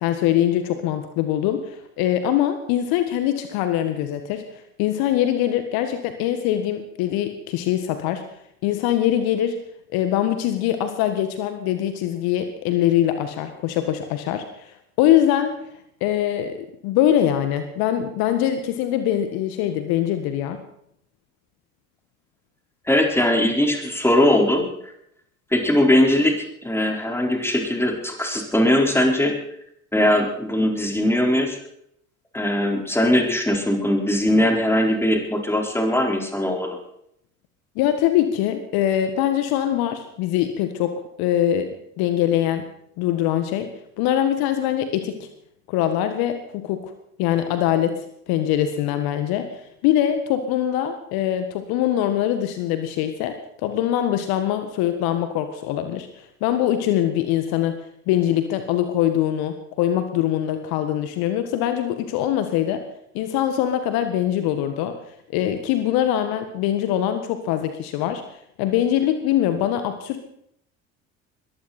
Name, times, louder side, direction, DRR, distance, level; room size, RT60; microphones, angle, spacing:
voice 1, 0.0-4.4 4.8-8.2 8.6-9.6 9.9-15.6 16.0-16.6 16.8-20.6 37.8-42.6 43.0-43.7 44.0-45.3 45.7-46.9 47.2-57.8 58.1-62.8 63.1-65.0 65.3-68.2 68.6-70.3, left 11 dB, 60° left, 9 dB, 1.7 m, -23 dB
voice 2, 22.9-24.7 25.5-29.4 29.9-31.6 32.3-36.8, left 1 dB, 5° left, 2 dB, 4.7 m, -20 dB
21.5 x 15.0 x 4.4 m, 0.73 s
hypercardioid pair, 60°, 41 cm